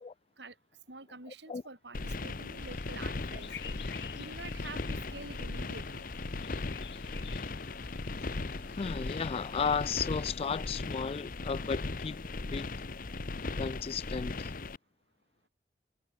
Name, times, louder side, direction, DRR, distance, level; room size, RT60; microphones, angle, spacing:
voice 1, 0.9-3.5 4.2-6.1, right 3 dB, 80° right, 5.3 m, -47 dB
sound 1, 1.9-14.8, left 3 dB, 50° left, 0.9 m, -38 dB
Bird vocalization bird call bird song, 2.6-9.9, left 8 dB, 75° left, 1.3 m, -51 dB
voice 2, 8.8-12.2 12.5-12.7 13.6-14.5, left 6 dB, 35° left, 0.3 m, -34 dB
head